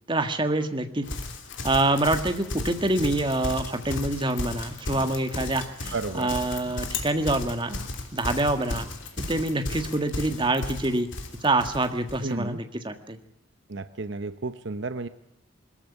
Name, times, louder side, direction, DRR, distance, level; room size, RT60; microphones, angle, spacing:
voice 1, 0.1-1.0 1.6-7.8 8.1-8.9 9.2-11.1 11.4-13.2, right 2 dB, 25° right, 7 dB, 1.7 m, -26 dB
Livestock farm animals working animals, 1.0-12.2, left 2 dB, 65° left, 3.1 m, -34 dB
voice 2, 5.9-6.3 12.2-12.6 13.7-15.1, right 3 dB, 60° right, 12 dB, 0.8 m, -32 dB
21.5 x 14.5 x 9.9 m, 0.76 s
head